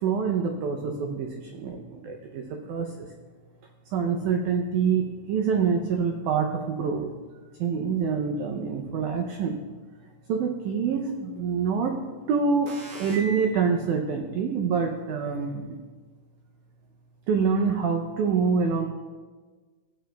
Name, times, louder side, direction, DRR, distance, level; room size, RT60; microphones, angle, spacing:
voice 1, 0.0-3.1 3.9-7.1 7.6-9.6 10.3-12.0 12.3-15.8 17.3-18.9, right 6 dB, 90° right, 3 dB, 1.7 m, -26 dB
15.5 x 8.9 x 2.2 m, 1.4 s
omnidirectional pair, 4.3 m